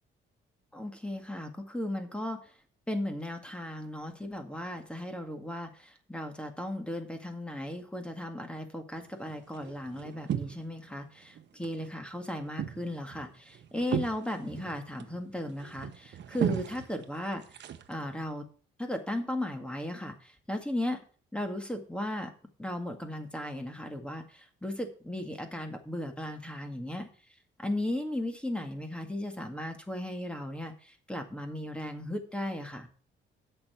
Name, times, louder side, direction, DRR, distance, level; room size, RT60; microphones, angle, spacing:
voice 1, 0.7-2.4 2.9-17.4 17.9-18.5 18.8-21.0 21.3-22.3 22.6-27.1 27.6-32.9, left 1 dB, 5° left, 5 dB, 2.0 m, -36 dB
sound 1, 9.0-10.9 11.2-11.9 12.2-18.2, right 10 dB, 65° right, 1.1 m, -37 dB
8.4 x 6.9 x 7.0 m, 0.42 s
cardioid pair, 90°, 20 cm